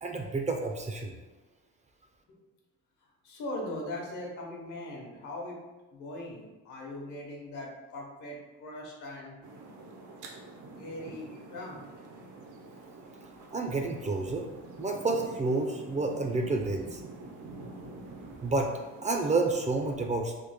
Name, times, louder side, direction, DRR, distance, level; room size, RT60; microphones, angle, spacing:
voice 1, 0.0-1.2 13.5-14.5 14.8-17.0 18.4-18.7 19.0-20.3, right 3 dB, 25° right, 3 dB, 0.3 m, -29 dB
voice 2, 3.2-5.6 5.9-9.4 10.8-11.9, left 1 dB, 80° left, -1 dB, 0.9 m, -40 dB
sound 1, 9.4-19.9, right 2 dB, 75° right, 0.6 m, -47 dB
3.2 x 2.0 x 3.3 m, 1.2 s
cardioid pair, 90°, 30 cm